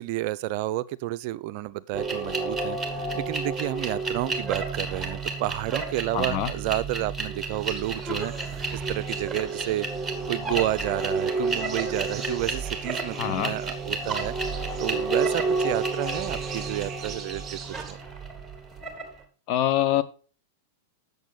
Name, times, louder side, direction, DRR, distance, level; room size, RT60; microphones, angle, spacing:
voice 1, 0.0-8.3 8.7-9.9 10.3-17.6 17.9-18.0, right 15 dB, 50° right, 0.4 m, -30 dB
sound 1, 1.9-19.2, right 3 dB, 10° right, 2.0 m, -30 dB
voice 2, 6.1-6.5 13.2-13.5 19.5-20.0, left 12 dB, 50° left, 0.9 m, -24 dB
sound 2, 7.5-17.9, right 7 dB, 30° right, 2.4 m, -44 dB
8.2 x 6.8 x 4.0 m
hypercardioid pair, 100°, 0 cm